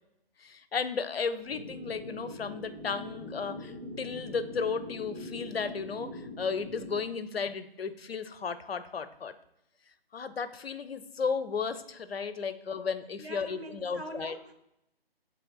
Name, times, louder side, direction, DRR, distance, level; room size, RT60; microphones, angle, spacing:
voice 1, 0.4-9.3 10.1-14.3, left 5 dB, 80° left, 12 dB, 0.5 m, -34 dB
voice 2, 1.3-1.6 13.2-14.5, right 1 dB, 90° right, 6 dB, 0.8 m, -44 dB
sound 1, 1.5-7.0, left 1 dB, 15° left, 0.5 m, -43 dB
6.7 x 3.2 x 2.3 m, 0.86 s
figure-of-eight pair, 150°, 30 cm